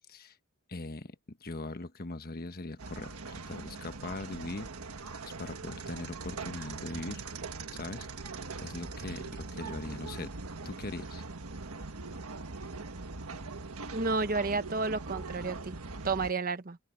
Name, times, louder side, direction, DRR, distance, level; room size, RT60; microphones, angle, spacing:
voice 1, 0.7-4.7 5.4-7.2 7.7-10.3 10.6-11.2, left 2 dB, 45° left, 1.3 m, -41 dB
sound 1, 2.8-16.3, right 3 dB, 80° right, 1.5 m, -41 dB
voice 2, 13.9-15.8 16.0-16.8, right 3 dB, 40° right, 1.1 m, -31 dB
open air
head